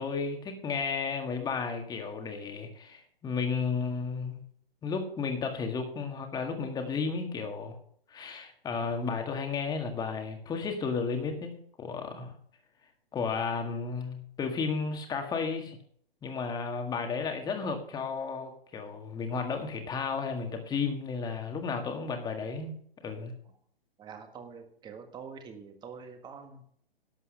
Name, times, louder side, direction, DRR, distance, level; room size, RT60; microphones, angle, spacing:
voice 1, 0.0-4.4 4.8-7.8 8.1-12.3 13.1-15.8 16.2-22.8 23.0-23.3, left 5 dB, 15° left, 4 dB, 1.9 m, -33 dB
voice 2, 24.0-26.7, right 6 dB, 15° right, 6 dB, 1.6 m, -45 dB
12.0 x 7.9 x 6.5 m, 0.62 s
hypercardioid pair, 130°, 30 cm